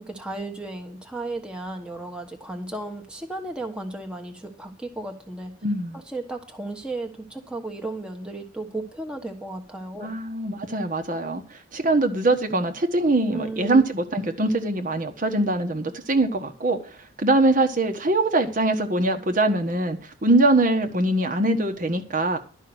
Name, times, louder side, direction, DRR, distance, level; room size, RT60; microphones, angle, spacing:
voice 1, 0.0-5.5 5.9-10.2 13.3-13.9, right 2 dB, 5° right, 1.2 m, -34 dB
voice 2, 5.6-6.0 10.0-16.8 17.2-22.4, right 2 dB, 40° right, 1.2 m, -22 dB
12.0 x 5.6 x 8.0 m
head